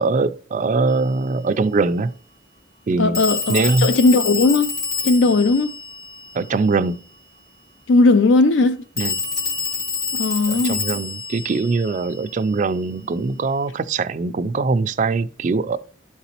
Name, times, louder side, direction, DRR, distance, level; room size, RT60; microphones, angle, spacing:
voice 1, 0.0-2.1 2.9-3.2 3.5-3.9 6.3-7.0 9.0-9.2 10.5-15.8, right 3 dB, 40° right, 0.3 m, -22 dB
Telephone, 0.9-1.0 3.1-6.8 9.0-12.7, left 5 dB, 55° left, 2.6 m, -28 dB
voice 2, 3.0-4.8 5.0-5.8 7.9-8.8 10.1-10.8, left 3 dB, 70° left, 0.4 m, -17 dB
12.0 x 4.0 x 2.9 m
head